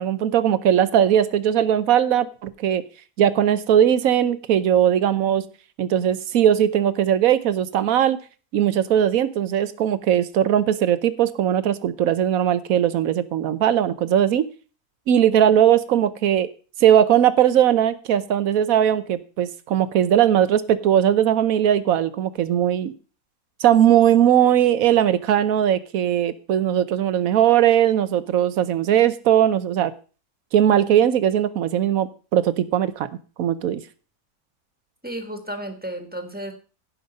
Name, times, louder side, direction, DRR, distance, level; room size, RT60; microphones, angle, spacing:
voice 1, 0.0-2.8 3.2-5.4 5.8-8.2 8.5-14.5 15.1-16.5 16.8-22.9 23.6-29.9 30.5-33.1 33.4-33.8, right 10 dB, 70° right, 14 dB, 1.2 m, -19 dB
voice 2, 35.0-36.5, right 1 dB, 5° right, 5 dB, 1.4 m, -32 dB
16.0 x 5.3 x 5.3 m, 0.38 s
omnidirectional pair, 1.6 m